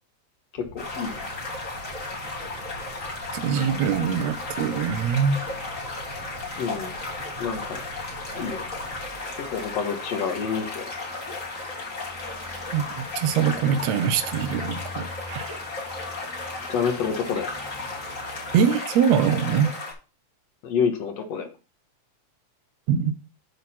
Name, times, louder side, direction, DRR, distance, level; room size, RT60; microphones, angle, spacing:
voice 1, 0.5-1.2 6.6-7.0 7.4-7.8 8.4-8.6 9.4-10.9 16.7-17.5 20.6-21.5, left 6 dB, 65° left, 2.4 m, -28 dB
sound 1, 0.6-9.0, right 3 dB, 50° right, 1.7 m, -44 dB
sound 2, 0.8-19.9, left 3 dB, 30° left, 2.0 m, -35 dB
voice 2, 3.3-5.4 12.7-15.6 18.5-19.7 22.9-23.2, right 7 dB, 75° right, 1.9 m, -23 dB
sound 3, 3.8-18.6, left 1 dB, 10° right, 1.4 m, -46 dB
12.0 x 4.0 x 4.3 m
omnidirectional pair, 3.3 m